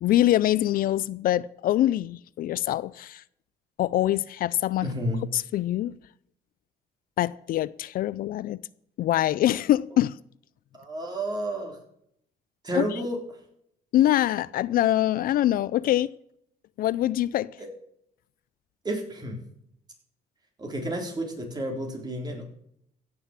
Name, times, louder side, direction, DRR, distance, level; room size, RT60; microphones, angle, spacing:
voice 1, 0.0-3.2 3.8-4.9 5.3-6.0 7.2-8.6 9.0-10.2 12.7-13.0 13.9-16.1 16.8-17.5, left 13 dB, 60° left, 0.4 m, -24 dB
voice 2, 4.8-5.2 10.7-11.8 12.6-13.2 17.6-17.7 18.8-19.4 20.6-22.4, right 1 dB, 25° right, 3.9 m, -31 dB
16.0 x 6.8 x 7.5 m
cardioid pair, 110°, 17 cm